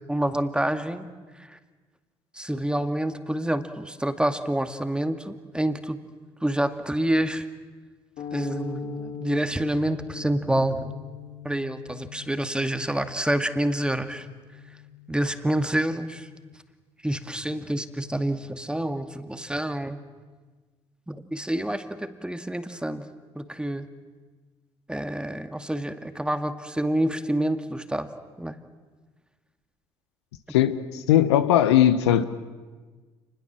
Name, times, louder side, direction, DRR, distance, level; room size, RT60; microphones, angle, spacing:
voice 1, 0.1-1.1 1.4-1.6 2.3-6.1 6.4-7.5 8.3-10.9 11.4-14.3 15.1-16.3 17.0-20.0 21.1-23.9 24.9-28.1 28.4-28.6, right 1 dB, 5° right, 2.2 m, -27 dB
sound 1, 8.2-16.5, left 8 dB, 60° left, 4.5 m, -41 dB
voice 2, 30.5-32.2, left 11 dB, 80° left, 1.1 m, -19 dB
29.0 x 21.0 x 7.6 m
hypercardioid pair, 50°, 14 cm